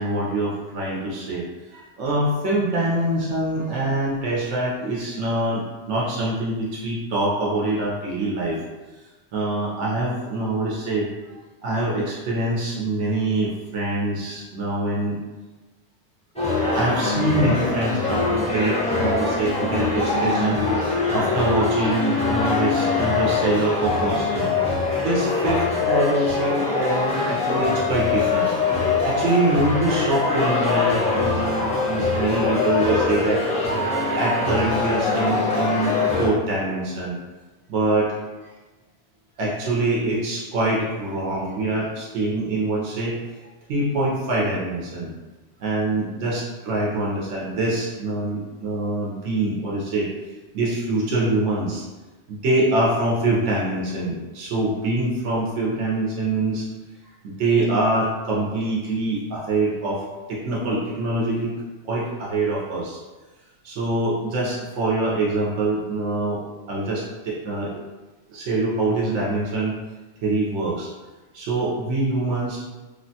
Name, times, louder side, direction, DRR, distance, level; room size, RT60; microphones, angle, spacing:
voice 1, 0.0-8.6 9.3-11.1 11.6-15.2 16.7-20.6 21.1-24.5 24.7-28.5 29.0-33.4 34.1-35.9 36.2-37.1 37.7-38.2 39.4-45.1 45.6-50.1 50.5-51.8 52.3-56.7 57.2-61.5 61.8-63.0 63.6-66.4 66.7-67.8 68.3-69.7 70.2-70.9 71.3-72.7, right 2 dB, 85° right, -5 dB, 0.9 m, -24 dB
sound 1, 16.4-36.3, left 3 dB, 10° left, 0.4 m, -23 dB
3.1 x 2.1 x 2.6 m, 1.2 s
omnidirectional pair, 1.2 m